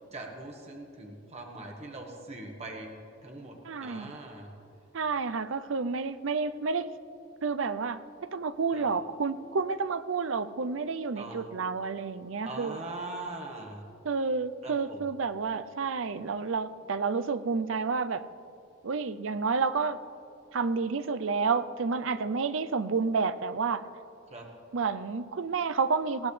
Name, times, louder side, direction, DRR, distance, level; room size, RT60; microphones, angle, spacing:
voice 1, 0.1-2.9 3.2-4.5 8.7-8.8 11.1-11.5 12.4-13.8 14.6-15.0 24.3-24.5, right 2 dB, 35° right, 1 dB, 1.6 m, -41 dB
voice 2, 3.6-4.1 4.9-6.9 7.4-12.8 14.0-18.3 18.8-20.0 20.5-23.8 24.7-26.3, right 4 dB, 80° right, 13 dB, 0.6 m, -30 dB
19.5 x 16.0 x 3.3 m, 2.7 s
head